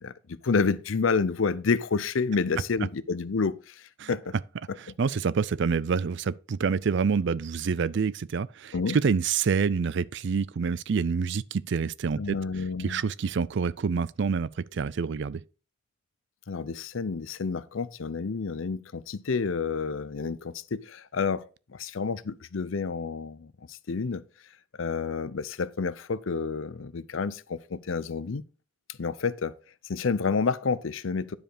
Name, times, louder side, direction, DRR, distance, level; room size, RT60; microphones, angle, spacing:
voice 1, 0.0-4.3 4.7-4.8 8.7-9.0 12.2-13.0 16.5-24.2 24.8-28.4 29.0-29.5 29.9-31.4, left 5 dB, 85° left, 0.6 m, -29 dB
voice 2, 5.0-12.4 12.8-15.4, right 5 dB, 60° right, 0.4 m, -27 dB
10.5 x 4.9 x 5.0 m
head